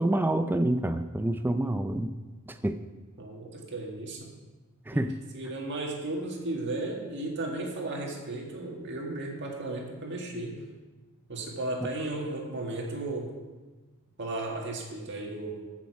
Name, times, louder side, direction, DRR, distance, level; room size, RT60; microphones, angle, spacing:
voice 1, 0.0-2.1 2.5-2.8 4.9-5.2 11.8-11.9, right 1 dB, 10° right, 9 dB, 0.3 m, -27 dB
voice 2, 3.2-4.3 4.9-5.0 5.3-10.6 11.3-13.3 14.2-15.6, right 2 dB, 55° right, 0 dB, 1.8 m, -35 dB
15.5 x 6.3 x 4.7 m, 1.2 s
head